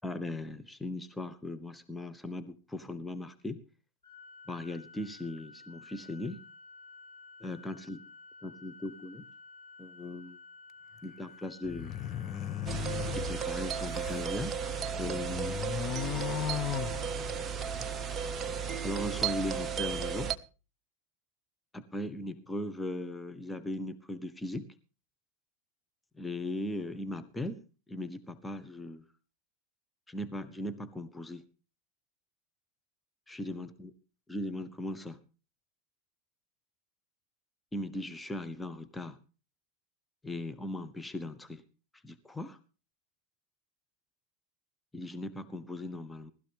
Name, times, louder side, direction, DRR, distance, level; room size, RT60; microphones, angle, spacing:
voice 1, 0.0-3.6 4.5-6.4 7.4-8.0 8.4-9.2 9.8-10.4 11.0-11.9 13.1-14.5 15.0-15.6 18.8-20.3 21.7-24.7 26.2-29.0 30.1-31.4 33.3-33.9 34.3-35.2 37.7-39.2 40.2-41.6 42.0-42.6 44.9-46.3, left 1 dB, 5° left, 9 dB, 1.0 m, -38 dB
Organ, 4.0-15.1, left 3 dB, 75° left, 6.1 m, -53 dB
sound 1, 11.6-14.3 14.8-17.6, left 11 dB, 30° left, 0.9 m, -37 dB
sound 2, 12.7-20.4, right 7 dB, 25° right, 0.9 m, -34 dB
19.0 x 13.0 x 3.5 m, 0.34 s
figure-of-eight pair, 90°, 0 cm